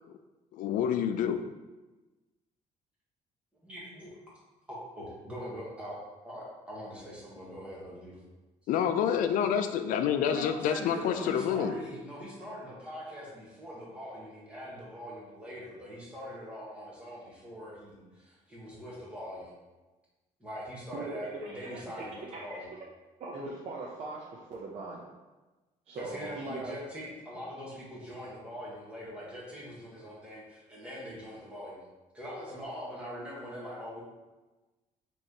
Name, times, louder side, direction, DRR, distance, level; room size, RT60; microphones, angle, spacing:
voice 1, 0.5-1.4 8.7-11.7, left 8 dB, 75° left, 8 dB, 0.4 m, -28 dB
voice 2, 3.6-4.1 4.7-6.0 6.2-8.2 10.3-19.5 20.4-22.7 26.0-31.8 32.1-34.0, equal, 10° right, -6 dB, 1.3 m, -42 dB
voice 3, 20.9-22.6 23.2-25.1 25.9-26.7, right 3 dB, 50° right, -4 dB, 0.6 m, -41 dB
5.7 x 3.1 x 2.8 m, 1.2 s
cardioid pair, 165°, 14 cm